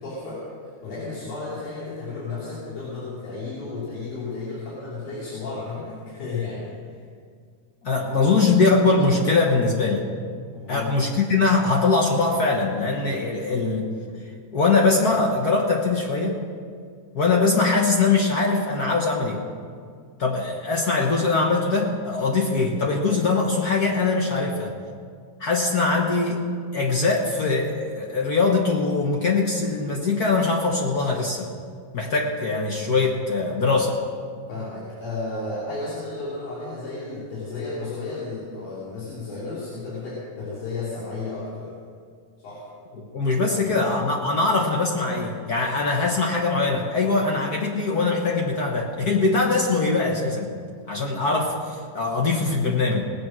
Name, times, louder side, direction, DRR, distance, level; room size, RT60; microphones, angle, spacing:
voice 1, 0.0-7.0 8.2-8.4 10.5-10.9 34.5-41.7 42.4-42.6 43.2-43.3 43.7-43.8, left 3 dB, 90° left, -9 dB, 4.3 m, -33 dB
voice 2, 7.8-10.0 10.7-13.9 14.5-16.4 17.1-19.4 20.2-24.7 25.4-26.4 26.7-31.5 31.9-34.0 43.0-50.5 50.9-53.1, left 3 dB, 60° left, 0 dB, 0.9 m, -22 dB
18.5 x 8.6 x 6.1 m, 2.1 s
omnidirectional pair, 3.4 m